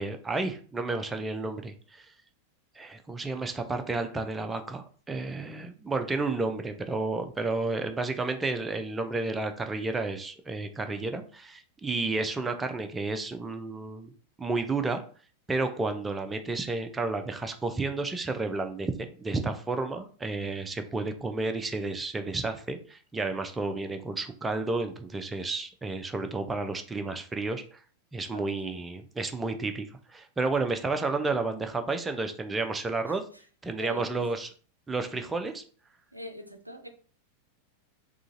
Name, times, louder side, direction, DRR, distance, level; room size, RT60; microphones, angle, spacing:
voice 1, 0.0-2.1 2.8-14.1 14.4-15.1 15.5-27.8 28.1-33.2 33.6-34.5 34.9-35.6, right 3 dB, 10° right, 6 dB, 0.4 m, -31 dB
voice 2, 28.3-28.8 33.1-33.2 33.8-34.2 36.1-36.9, equal, 90° right, 6 dB, 0.4 m, -42 dB
3.7 x 2.9 x 2.5 m, 0.42 s
figure-of-eight pair, 90°, 0 cm